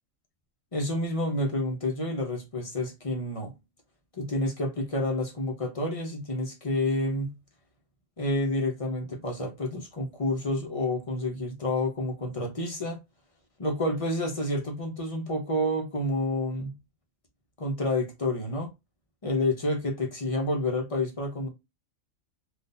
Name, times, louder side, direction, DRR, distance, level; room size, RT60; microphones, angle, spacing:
voice 1, 0.7-3.5 4.2-7.3 8.2-13.0 13.6-16.7 17.6-18.7 19.2-21.5, left 1 dB, 30° left, 0.8 m, -29 dB
3.8 x 2.5 x 2.6 m
omnidirectional pair, 1.3 m